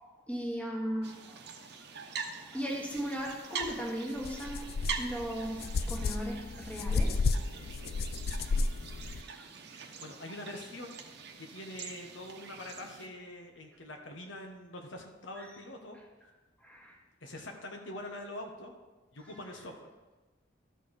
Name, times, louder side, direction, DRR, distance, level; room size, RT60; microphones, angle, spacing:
voice 1, 0.0-1.4 2.3-7.2 15.4-15.6 15.9-16.0 16.6-17.0 17.3-17.5 19.2-19.7, equal, 5° left, -2 dB, 1.5 m, -38 dB
sound 1, 1.0-13.1, right 5 dB, 60° right, 0.9 m, -44 dB
sound 2, 3.6-3.7 4.2-9.2, left 3 dB, 55° left, 0.4 m, -32 dB
voice 2, 9.7-11.0 11.4-16.0 17.2-18.7 19.1-19.9, left 1 dB, 80° left, 2 dB, 1.3 m, -44 dB
12.5 x 4.6 x 4.9 m, 1.2 s
head